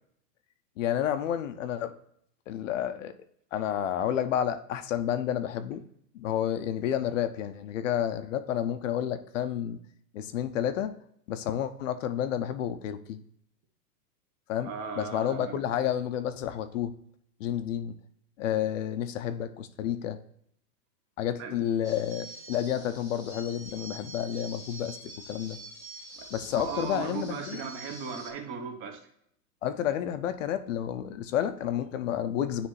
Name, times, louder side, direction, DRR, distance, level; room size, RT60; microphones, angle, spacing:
voice 1, 0.8-1.9 2.5-3.1 3.5-5.8 6.1-9.8 10.1-10.9 11.3-13.2 14.5-14.7 15.0-16.9 17.4-18.0 18.4-20.2 21.2-25.0 25.3-25.6 26.3-27.6 29.6-32.7, left 10 dB, 50° left, 10 dB, 0.6 m, -30 dB
voice 2, 14.6-15.6 21.4-21.6 26.2-29.0, right 5 dB, 25° right, 6 dB, 0.8 m, -37 dB
sound 1, 21.8-28.3, right 2 dB, 5° right, 1.2 m, -46 dB
9.8 x 3.3 x 3.1 m, 0.71 s
hypercardioid pair, 140°, 48 cm